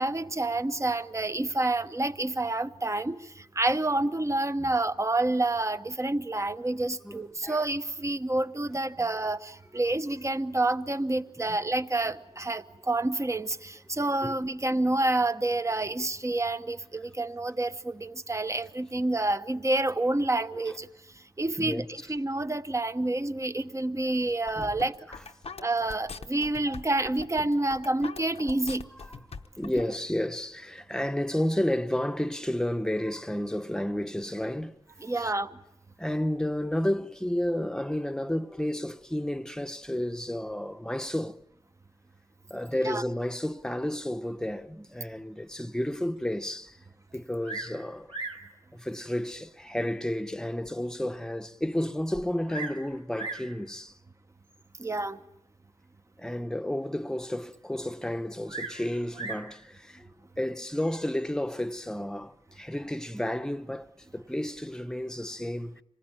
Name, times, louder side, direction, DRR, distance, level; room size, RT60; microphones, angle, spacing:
voice 1, 0.0-20.9 21.4-21.8 22.1-25.0 25.6-28.9 35.0-35.6 42.8-43.0 54.8-55.2, right 2 dB, 30° right, 1.0 m, -28 dB
voice 2, 7.0-7.6 9.0-9.1 11.5-11.6 14.2-14.3 21.6-21.9 24.6-24.7 25.1-25.2 29.1-29.2 29.6-34.8 35.2-35.3 36.0-41.4 42.5-46.8 47.1-48.1 48.7-53.9 56.2-60.1 60.4-65.8, left 1 dB, 5° left, 0.9 m, -31 dB
sound 1, 24.3-29.8, left 4 dB, 85° left, 1.0 m, -42 dB
Bird vocalization bird call bird song, 47.4-47.8 48.1-48.5 49.3-49.4 50.0-50.1 50.6-50.7 50.9-51.0 52.1-52.8 53.1-53.5 54.5-54.8 58.5-59.5 60.6-61.0, right 3 dB, 70° right, 3.8 m, -38 dB
26.0 x 19.5 x 8.9 m
wide cardioid pair, 65°, 10 cm